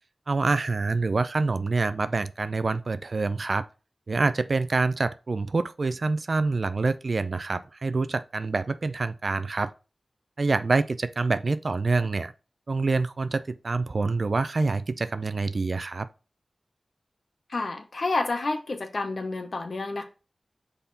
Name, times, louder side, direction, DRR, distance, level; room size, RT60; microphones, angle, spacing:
voice 1, 0.3-3.7 4.1-9.7 10.4-12.3 12.7-16.1, right 3 dB, 65° right, 0.5 m, -26 dB
voice 2, 17.5-20.0, left 3 dB, 70° left, 1.0 m, -29 dB
5.7 x 4.1 x 4.2 m
wide cardioid pair, 60°, 0 cm